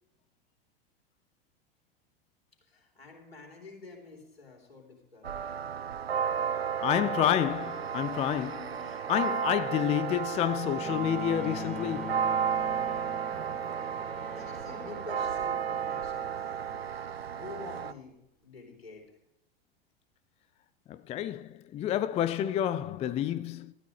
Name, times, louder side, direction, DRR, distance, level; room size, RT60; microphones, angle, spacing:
voice 1, 2.7-5.7 12.0-12.1 13.9-16.8 17.3-18.1 18.4-19.0, left 3 dB, 80° left, 3.6 m, -48 dB
sound 1, 5.2-17.9, right 7 dB, 85° right, 0.5 m, -33 dB
voice 2, 6.8-12.4 20.9-23.7, left 11 dB, 20° left, 0.4 m, -29 dB
Bowed string instrument, 10.8-16.9, left 3 dB, 5° left, 2.7 m, -43 dB
19.0 x 13.0 x 3.3 m
figure-of-eight pair, 85°, 30 cm